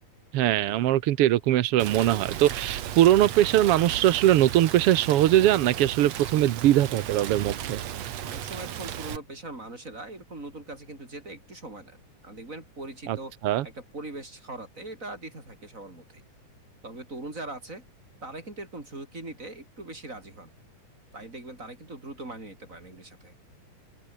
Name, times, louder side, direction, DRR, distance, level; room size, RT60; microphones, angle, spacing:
voice 1, 0.3-7.8 13.1-13.2 13.4-13.6, right 13 dB, 80° right, 1.3 m, -21 dB
Rain, 1.8-9.2, right 10 dB, 60° right, 2.4 m, -35 dB
voice 2, 8.2-13.3 13.6-16.2 16.8-17.8 18.2-20.5 21.1-23.3, right 2 dB, 20° right, 6.5 m, -41 dB
open air
omnidirectional pair, 3.8 m